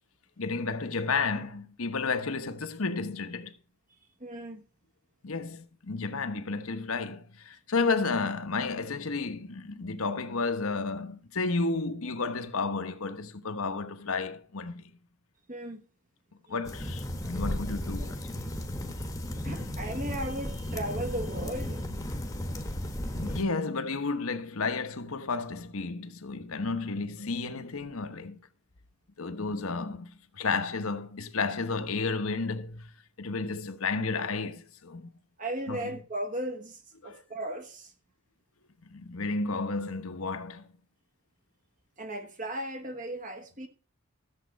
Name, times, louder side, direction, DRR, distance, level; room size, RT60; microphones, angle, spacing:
voice 1, 0.4-3.5 5.2-14.9 16.5-18.2 23.1-28.4 29.2-32.9 33.2-35.1 35.7-35.8 37.0-37.2 38.9-40.6, left 4 dB, 75° left, 1.1 m, -32 dB
voice 2, 4.2-4.6 7.8-7.9 15.5-15.8 19.4-21.8 35.4-37.9 42.0-43.7, right 1 dB, 35° right, 1.2 m, -36 dB
sound 1, 16.6-23.4, left 1 dB, 15° left, 1.1 m, -34 dB
13.5 x 7.4 x 5.2 m
head